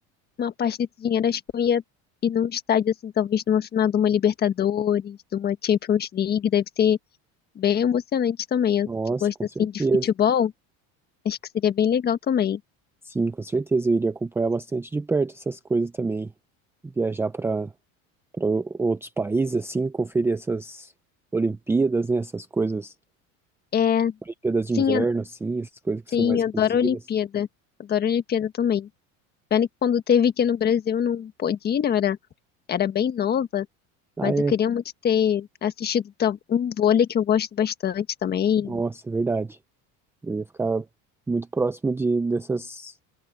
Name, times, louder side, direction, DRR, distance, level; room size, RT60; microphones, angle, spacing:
voice 1, 0.4-1.8 2.2-7.0 7.5-8.9 9.2-10.5 11.2-12.6 23.7-24.1 24.8-25.0 26.1-27.5 27.8-28.9 29.5-32.2 32.7-33.6 34.2-38.8, left 8 dB, 30° left, 1.4 m, -23 dB
voice 2, 8.9-9.3 9.6-10.1 13.0-16.3 17.0-17.7 18.3-20.9 21.3-22.9 24.4-27.0 34.2-34.6 38.6-39.6 40.2-40.9 41.3-42.9, right 3 dB, 5° right, 0.5 m, -26 dB
cardioid pair, 155°, 34 cm